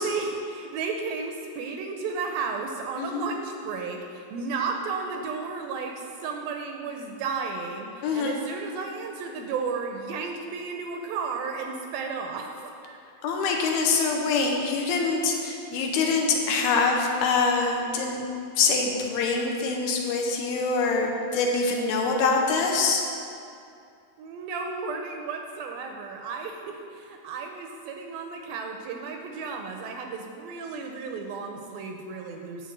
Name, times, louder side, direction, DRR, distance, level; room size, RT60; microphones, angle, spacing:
voice 1, 0.0-13.0 24.2-32.7, right 4 dB, 80° right, 3 dB, 2.2 m, -33 dB
voice 2, 8.0-8.4 13.2-18.3 18.6-23.0, left 4 dB, 80° left, 1 dB, 2.7 m, -24 dB
9.6 x 4.0 x 7.4 m, 2.5 s
omnidirectional pair, 4.4 m